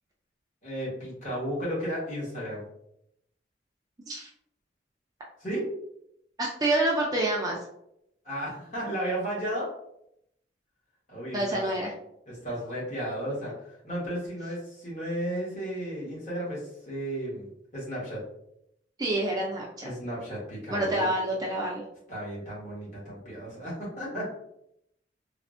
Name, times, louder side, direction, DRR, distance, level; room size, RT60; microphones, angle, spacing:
voice 1, 0.6-2.7 5.4-5.6 8.2-9.7 11.1-11.6 12.3-18.2 19.8-21.1 22.1-24.2, right 1 dB, 40° left, -6 dB, 1.2 m, -34 dB
voice 2, 6.4-7.6 11.3-11.9 19.0-19.9 20.7-21.8, right 1 dB, 20° right, -2 dB, 0.4 m, -27 dB
3.3 x 2.1 x 2.5 m, 0.78 s
head